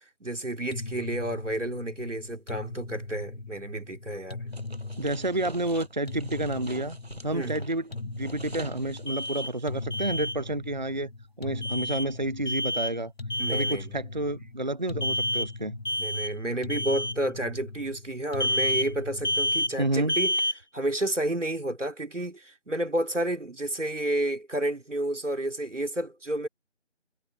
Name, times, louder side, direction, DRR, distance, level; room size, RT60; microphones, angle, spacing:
voice 1, 0.2-4.4 7.3-7.7 13.4-13.9 16.0-20.3 20.7-26.5, right 1 dB, 90° right, 3.2 m, -30 dB
sound 1, 0.7-20.0, left 3 dB, 55° left, 1.2 m, -40 dB
sound 2, 4.5-10.0, right 2 dB, 60° right, 7.0 m, -46 dB
voice 2, 5.0-7.0 7.2-11.1 11.4-13.1 13.5-15.8 19.8-20.2, right 1 dB, 40° right, 0.7 m, -30 dB
Alarm, 9.1-9.5 9.9-10.4 11.6-12.1 12.5-12.9 13.3-13.8 15.0-15.5 15.9-16.3 16.7-17.1 18.4-18.9 19.2-19.7 20.1-20.6, equal, 40° left, 0.7 m, -28 dB
figure-of-eight pair, 170°, 36 cm